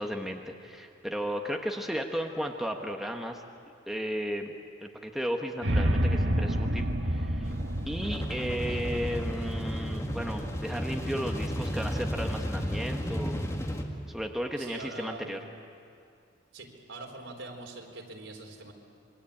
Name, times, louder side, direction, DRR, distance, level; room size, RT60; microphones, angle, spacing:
voice 1, 0.0-3.4 3.9-4.5 4.8-7.5 7.9-13.4 14.1-15.4, equal, ahead, 2 dB, 1.3 m, -34 dB
sound 1, 5.6-11.7, equal, 60° right, 1.6 m, -30 dB
sound 2, 7.5-13.8, equal, 15° left, 1.9 m, -33 dB
voice 2, 14.6-15.5 16.5-18.7, right 2 dB, 80° right, 1 dB, 4.1 m, -43 dB
26.5 x 23.5 x 8.5 m, 2.4 s
head